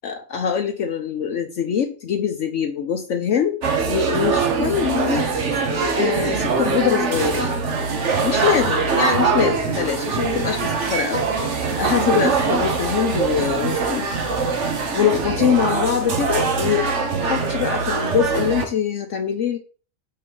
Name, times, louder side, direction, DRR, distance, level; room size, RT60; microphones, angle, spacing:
voice 1, 0.0-5.2 6.0-7.5 8.2-11.2 11.7-14.1 14.9-19.6, left 8 dB, 65° left, 4 dB, 1.1 m, -23 dB
sound 1, 3.6-18.7, right 4 dB, 60° right, 1.4 m, -22 dB
6.8 x 5.7 x 3.8 m, 0.38 s
omnidirectional pair, 1.4 m